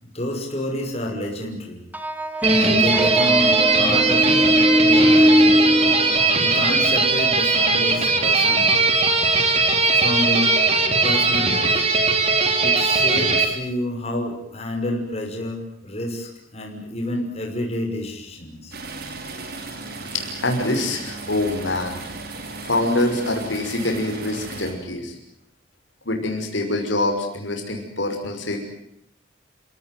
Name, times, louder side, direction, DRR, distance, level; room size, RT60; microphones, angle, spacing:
voice 1, 0.0-1.9 2.6-5.8 6.4-8.8 9.9-10.5 11.0-11.8 12.6-18.8, left 1 dB, 35° left, 1 dB, 5.9 m, -29 dB
sound 1, 1.9-7.1, equal, 10° right, 1.4 m, -20 dB
sound 2, 2.4-13.4, right 3 dB, 35° right, 3.8 m, -19 dB
sound 3, 18.7-24.7, right 3 dB, 55° right, 4.6 m, -35 dB
voice 2, 20.1-22.0 22.6-25.1 26.1-28.6, left 2 dB, 75° left, 3 dB, 5.8 m, -25 dB
29.0 x 18.0 x 9.4 m, 0.77 s
head